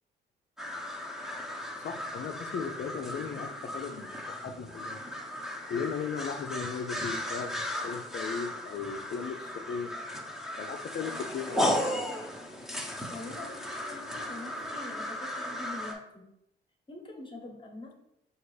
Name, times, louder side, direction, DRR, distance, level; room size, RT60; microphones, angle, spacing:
sound 1, 0.6-15.9, left 1 dB, ahead, 0.9 m, -36 dB
voice 1, 1.8-5.0 5.7-7.5 7.8-10.1 10.6-12.0, left 6 dB, 55° left, 7 dB, 0.5 m, -37 dB
voice 2, 13.1-16.3 16.9-17.9, left 2 dB, 25° left, 1 dB, 1.0 m, -44 dB
5.1 x 2.5 x 3.2 m, 0.81 s
cardioid pair, 90°, 20 cm